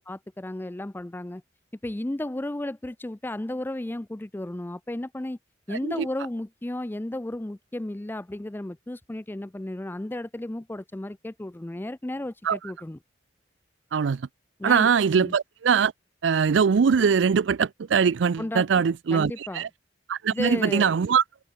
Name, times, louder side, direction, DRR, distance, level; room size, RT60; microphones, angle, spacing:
voice 1, 0.0-1.4 1.8-5.4 5.7-13.0 14.6-14.9 15.2-15.4 18.4-18.9 19.1-19.7 20.3-21.0, left 1 dB, 10° left, 0.4 m, -33 dB
voice 2, 13.9-14.3 14.6-15.9 16.2-19.7 20.1-21.2, right 6 dB, 85° right, 0.4 m, -22 dB
head